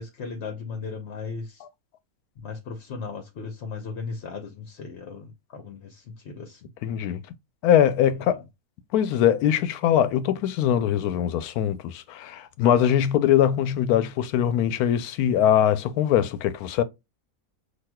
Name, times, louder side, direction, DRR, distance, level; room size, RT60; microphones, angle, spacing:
voice 1, 0.0-1.6 2.4-6.7 8.1-8.2, left 5 dB, 55° left, 0.9 m, -37 dB
voice 2, 6.8-7.2 7.6-8.4 8.9-16.8, left 10 dB, 90° left, 1.1 m, -22 dB
5.9 x 2.7 x 2.2 m
omnidirectional pair, 1.5 m